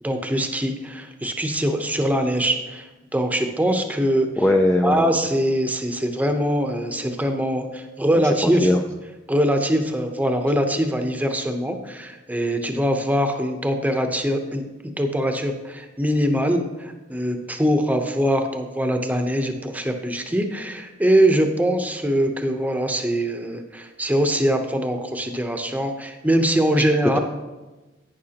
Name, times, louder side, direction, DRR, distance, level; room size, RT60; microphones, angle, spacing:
voice 1, 0.0-2.9 3.1-4.3 4.8-8.7 9.3-27.2, equal, 10° right, 6 dB, 0.8 m, -22 dB
voice 2, 4.4-5.3 8.1-8.8 26.8-26.9, left 1 dB, 10° left, 3 dB, 0.4 m, -21 dB
11.5 x 9.3 x 2.9 m, 1.1 s
head